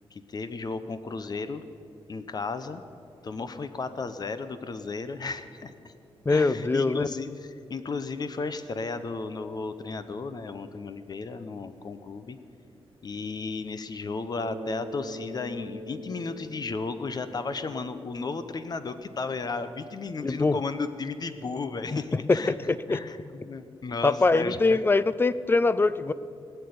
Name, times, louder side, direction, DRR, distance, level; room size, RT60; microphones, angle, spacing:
voice 1, 0.1-1.6 2.1-2.8 3.2-5.9 6.3-12.4 13.0-22.6 22.9-24.8, left 4 dB, 40° left, 11 dB, 0.8 m, -34 dB
voice 2, 6.3-7.1 20.2-20.6 22.3-22.4 22.7-23.0 24.0-26.1, left 3 dB, 20° left, 16 dB, 0.5 m, -23 dB
Bass guitar, 14.4-18.4, right 1 dB, 70° right, 1.5 m, -42 dB
19.0 x 6.8 x 9.7 m, 2.6 s
wide cardioid pair, 115°, 10 cm